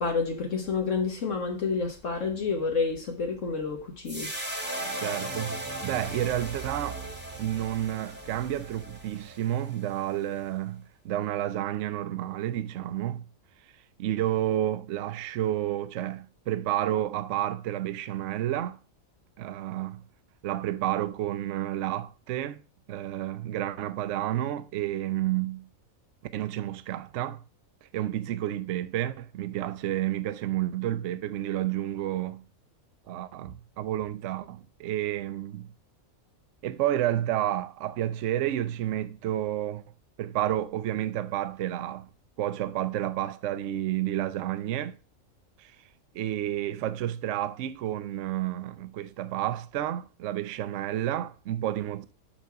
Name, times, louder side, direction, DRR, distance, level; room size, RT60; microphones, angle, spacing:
voice 1, 0.0-4.3, left 4 dB, 65° left, 1.4 m, -29 dB
sound 1, 4.1-10.5, right 2 dB, 10° right, 1.3 m, -37 dB
voice 2, 5.0-7.0 7.4-13.2 14.0-18.8 19.4-20.0 20.4-22.6 22.9-25.7 26.3-27.4 27.8-32.4 33.1-35.7 36.6-39.8 40.2-42.1 42.4-45.0 45.6-45.7 46.1-52.1, right 13 dB, 65° right, 0.9 m, -30 dB
6.0 x 6.0 x 5.6 m
omnidirectional pair, 1.5 m